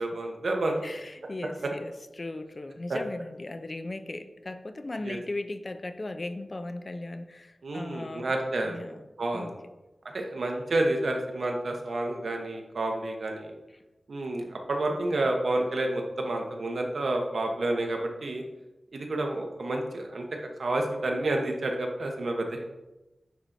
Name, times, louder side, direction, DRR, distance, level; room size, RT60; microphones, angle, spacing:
voice 1, 0.0-0.8 1.6-1.7 2.9-3.0 5.0-5.2 7.6-8.8 9.2-9.5 10.1-13.5 14.1-18.4 18.9-20.2 20.6-22.8, right 2 dB, 80° right, 2 dB, 0.9 m, -29 dB
voice 2, 0.8-8.3 8.6-9.0 9.3-9.5, left 2 dB, 40° left, 9 dB, 0.5 m, -37 dB
9.2 x 4.6 x 2.6 m, 1.1 s
wide cardioid pair, 105°, 0 cm